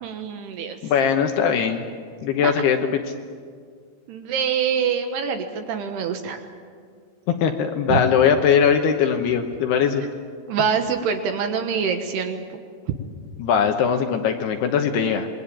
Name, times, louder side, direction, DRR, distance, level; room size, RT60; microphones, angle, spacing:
voice 1, 0.0-0.8 2.4-2.6 4.1-6.4 7.9-8.0 10.5-12.4, right 7 dB, 70° right, 6 dB, 2.9 m, -25 dB
voice 2, 0.8-1.8 2.2-2.9 7.4-10.0 13.4-15.3, left 7 dB, 70° left, 5 dB, 2.7 m, -20 dB
27.0 x 21.0 x 8.6 m, 2.1 s
omnidirectional pair, 5.6 m